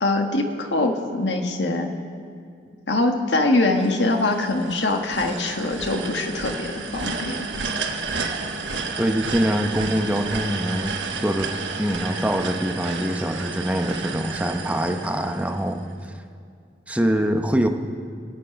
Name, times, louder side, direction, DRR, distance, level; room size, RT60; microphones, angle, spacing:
voice 1, 0.0-1.9 2.9-7.5, left 2 dB, 80° left, 4 dB, 1.3 m, -23 dB
sound 1, 3.8-15.9, right 4 dB, 90° right, 1.2 m, -31 dB
voice 2, 9.0-11.0 11.2-11.5 11.8-15.8 16.9-17.7, equal, 10° right, 5 dB, 0.8 m, -24 dB
23.5 x 8.5 x 5.1 m, 2.3 s
head